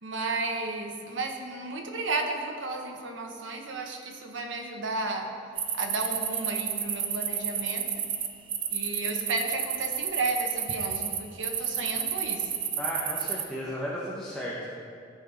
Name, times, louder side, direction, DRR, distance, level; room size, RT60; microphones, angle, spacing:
voice 1, 0.0-5.3 5.7-7.9 8.7-12.5, right 3 dB, 90° right, 2 dB, 1.1 m, -33 dB
sound 1, 5.6-13.4, right 8 dB, 30° right, 0.5 m, -31 dB
voice 2, 12.8-14.8, equal, 5° left, -6 dB, 1.0 m, -34 dB
14.0 x 5.2 x 4.1 m, 2.4 s
head